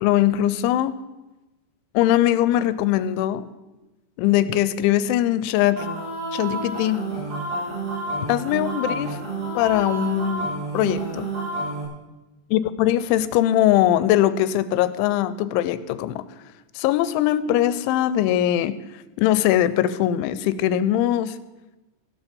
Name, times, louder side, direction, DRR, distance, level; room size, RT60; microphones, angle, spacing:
voice 1, 0.0-1.0 1.9-3.5 4.2-5.9 6.3-7.1 8.3-9.2 9.6-11.3 12.5-16.3 16.8-18.8 19.2-21.4, left 12 dB, 85° left, 14 dB, 3.0 m, -21 dB
sound 1, 5.8-11.8, right 2 dB, 80° right, 7.4 m, -29 dB
16.0 x 12.0 x 5.2 m, 1.1 s
omnidirectional pair, 5.4 m